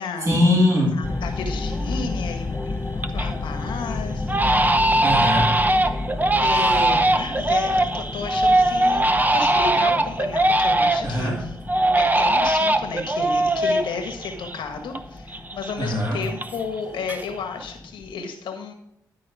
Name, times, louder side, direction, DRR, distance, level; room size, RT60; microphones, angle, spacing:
voice 1, 0.2-1.0 5.0-5.6 11.0-11.4 15.8-16.2, left 1 dB, 35° right, -4 dB, 3.1 m, -21 dB
voice 2, 0.9-4.3 6.4-9.0 9.3-11.5 12.0-18.7, left 5 dB, 80° left, 5 dB, 1.5 m, -32 dB
sound 1, 1.0-18.1, left 2 dB, 30° left, 0.9 m, -32 dB
Crying sobbing, 1.1-1.2 1.7-2.1 2.5-3.4 3.7-3.8 4.3-11.2 11.7-15.0 15.3-16.8 17.1-17.6, right 1 dB, 20° right, 0.8 m, -21 dB
12.5 x 4.2 x 5.0 m, 0.80 s
supercardioid pair, 45°, 8 cm